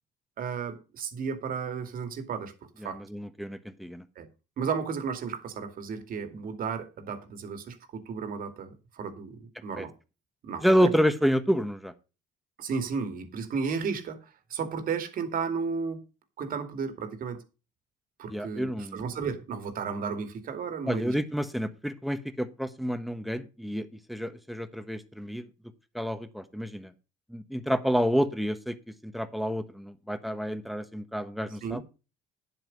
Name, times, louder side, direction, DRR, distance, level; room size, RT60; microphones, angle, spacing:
voice 1, 0.4-3.0 4.2-4.3 4.6-9.9 10.4-10.9 12.6-16.0 16.4-17.4 18.2-21.1 31.6-31.8, right 5 dB, 55° right, 9 dB, 2.2 m, -33 dB
voice 2, 2.8-4.0 9.8-9.9 10.6-11.9 18.3-19.0 20.9-25.4 25.9-26.9 27.3-28.8 29.0-31.8, equal, ahead, 11 dB, 1.2 m, -29 dB
10.0 x 7.8 x 5.3 m, 0.31 s
cardioid pair, 110°, 17 cm